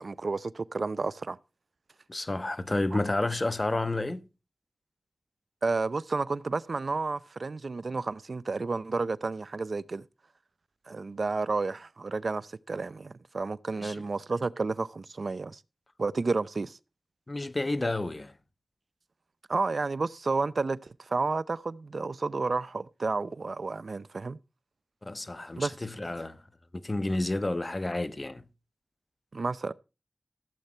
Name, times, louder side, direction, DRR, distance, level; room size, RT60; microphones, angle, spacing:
voice 1, 0.0-1.4 5.6-10.0 10.9-15.6 16.0-16.8 19.5-24.4 25.6-25.8 29.3-29.7, right 3 dB, 65° right, 0.6 m, -31 dB
voice 2, 2.1-4.3 13.8-14.0 17.3-18.3 25.0-26.4 26.7-28.4, left 2 dB, 40° left, 1.3 m, -30 dB
15.5 x 8.1 x 4.3 m
cardioid pair, 45°, 0 cm